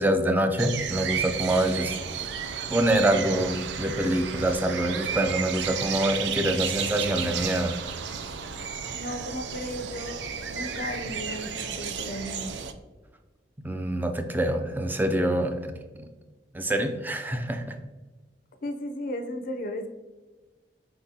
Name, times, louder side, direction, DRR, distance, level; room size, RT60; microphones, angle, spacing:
voice 1, 0.0-2.0 2.7-7.8 13.6-15.7 16.0-16.1 16.5-17.8, right 1 dB, 10° right, 6 dB, 0.4 m, -25 dB
sound 1, 0.6-12.7, right 7 dB, 80° right, 0.4 m, -33 dB
voice 2, 8.9-12.6 18.6-19.9, left 1 dB, 50° left, 6 dB, 0.5 m, -35 dB
4.5 x 3.8 x 2.7 m, 1.2 s
head